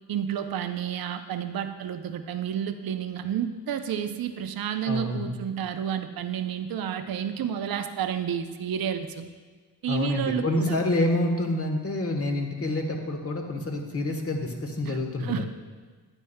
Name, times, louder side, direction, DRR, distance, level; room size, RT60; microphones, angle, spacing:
voice 1, 0.1-9.3 9.8-10.8 14.9-15.5, right 8 dB, 55° right, 8 dB, 0.7 m, -30 dB
voice 2, 4.9-5.3 9.9-15.5, left 1 dB, 30° left, 3 dB, 1.2 m, -27 dB
9.9 x 9.2 x 2.2 m, 1.4 s
cardioid pair, 85°, 43 cm